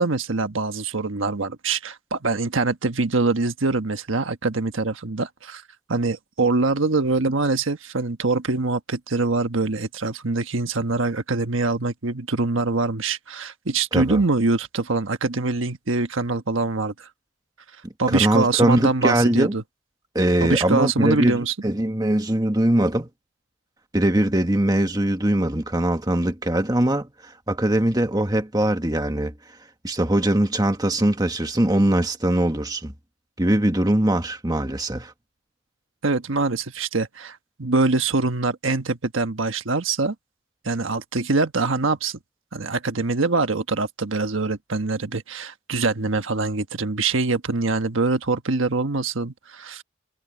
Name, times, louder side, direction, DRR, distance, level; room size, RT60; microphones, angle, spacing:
voice 1, 0.0-5.6 5.9-17.1 18.0-19.6 20.4-21.5 36.0-40.1 40.6-42.2 42.5-49.8, right 3 dB, 85° right, 1.3 m, -24 dB
voice 2, 18.1-19.5 20.1-23.1 23.9-29.3 29.8-32.9 33.4-35.1, right 1 dB, 20° right, 1.6 m, -21 dB
head